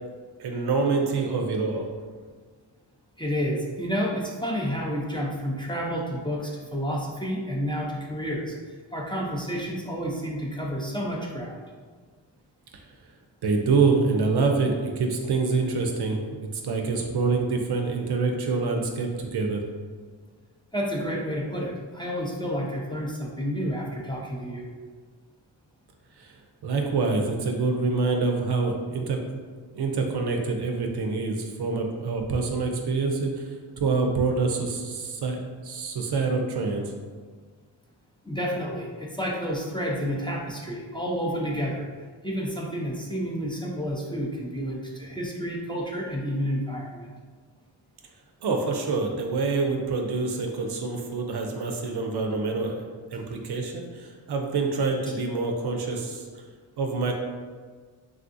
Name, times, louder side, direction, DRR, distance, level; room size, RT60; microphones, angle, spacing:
voice 1, 0.4-1.9 13.4-19.6 26.2-26.3 26.6-29.2 29.7-33.5 33.8-36.9 48.4-56.2 56.8-57.1, right 4 dB, 60° right, 3 dB, 0.5 m, -26 dB
voice 2, 3.2-11.6 20.7-24.7 38.2-41.9 42.2-47.1 53.1-53.2, equal, 10° left, -3 dB, 0.5 m, -30 dB
3.4 x 2.4 x 2.6 m, 1.5 s
cardioid pair, 55°, 44 cm